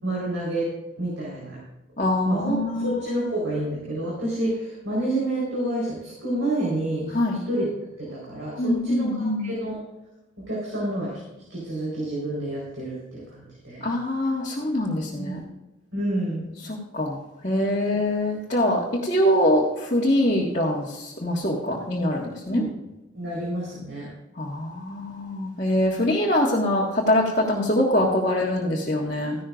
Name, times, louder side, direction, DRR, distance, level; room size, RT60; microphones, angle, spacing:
voice 1, 0.0-0.7 1.0-1.6 2.2-7.2 7.5-7.7 8.0-9.8 10.4-11.2 11.5-13.8 15.2-15.4 15.9-16.5 22.5-22.7 23.1-24.1, right 1 dB, 70° right, -5 dB, 4.3 m, -29 dB
voice 2, 2.0-3.2 7.1-7.4 8.6-9.5 13.8-15.4 16.9-17.2 17.4-22.6 24.4-29.4, left 1 dB, 35° left, -4 dB, 1.7 m, -23 dB
15.0 x 12.0 x 2.5 m, 1.0 s
head